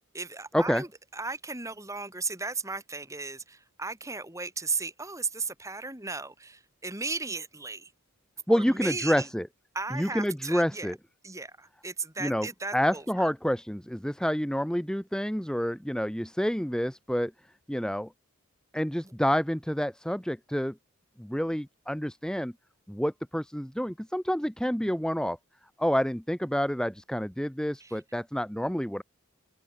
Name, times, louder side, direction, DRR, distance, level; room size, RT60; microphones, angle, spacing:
voice 1, 0.1-7.9 8.5-9.3 9.7-10.9 11.2-13.3 27.8-28.0, right 4 dB, 15° right, 3.9 m, -36 dB
voice 2, 8.5-9.5 9.9-11.0 12.2-12.5 12.7-17.3 17.7-18.1 18.7-20.7 21.2-22.5 22.9-25.4 25.8-29.0, equal, 5° left, 1.3 m, -28 dB
open air
head